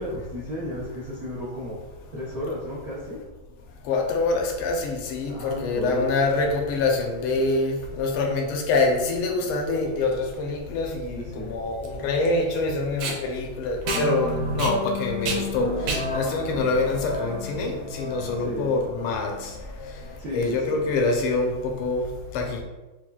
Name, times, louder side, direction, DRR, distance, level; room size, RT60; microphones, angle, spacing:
voice 1, 0.0-1.8 2.1-3.2 5.3-6.1 11.2-11.6 18.4-18.8 20.2-20.9, equal, 55° right, -10 dB, 0.7 m, -33 dB
voice 2, 3.8-19.6 20.3-22.1 22.3-22.6, left 3 dB, 85° left, 1 dB, 1.5 m, -25 dB
Packing tape duct tape, 10.2-17.7, right 4 dB, 80° right, 1.5 m, -33 dB
sound 1, 13.8-20.1, left 2 dB, 65° left, 0.6 m, -32 dB
5.8 x 2.3 x 2.3 m, 1.1 s
omnidirectional pair, 2.4 m